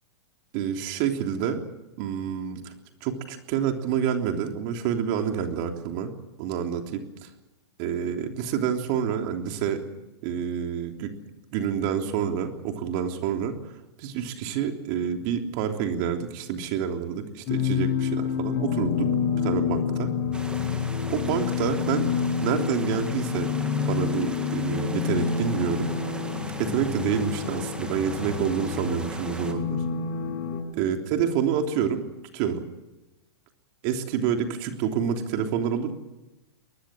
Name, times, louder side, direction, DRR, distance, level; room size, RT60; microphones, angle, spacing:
voice 1, 0.5-1.6 2.0-2.7 3.0-6.1 6.4-7.3 7.8-9.8 10.2-11.1 11.5-13.6 14.0-19.1 19.4-20.1 21.1-22.1 22.4-23.5 23.9-25.9 26.6-29.8 30.7-32.1 32.3-32.6 33.8-35.9, right 8 dB, 45° right, 5 dB, 3.4 m, -28 dB
sound 1, 17.5-30.6, left 6 dB, 40° left, 6.9 m, -28 dB
sound 2, 20.3-29.5, right 2 dB, 5° right, 2.1 m, -41 dB
23.0 x 20.5 x 7.7 m, 1.0 s
hypercardioid pair, 135°, 14 cm